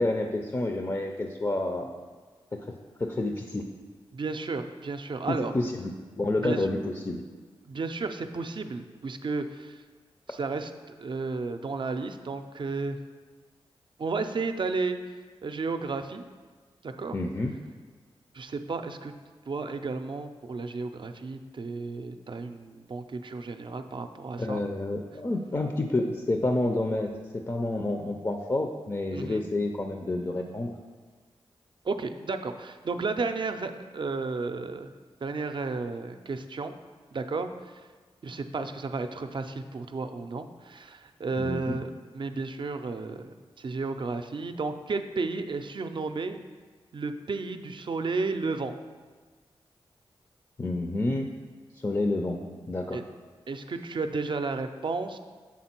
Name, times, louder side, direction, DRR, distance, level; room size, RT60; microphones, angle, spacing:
voice 1, 0.0-1.9 2.5-3.7 5.3-7.2 17.1-17.5 24.4-30.7 41.4-41.8 50.6-51.3 51.7-53.0, left 2 dB, 30° left, 4 dB, 0.5 m, -29 dB
voice 2, 4.1-5.5 6.4-6.7 7.6-9.8 10.3-10.7 11.0-13.0 14.0-15.0 15.4-16.2 16.8-17.2 18.3-19.1 19.5-24.6 29.1-29.4 31.8-34.9 35.2-36.7 37.1-37.8 38.2-41.9 42.1-46.4 46.9-48.8 52.9-53.0 53.5-55.2, right 4 dB, 50° right, 8 dB, 0.5 m, -33 dB
7.3 x 3.8 x 4.4 m, 1.4 s
cardioid pair, 45°, 10 cm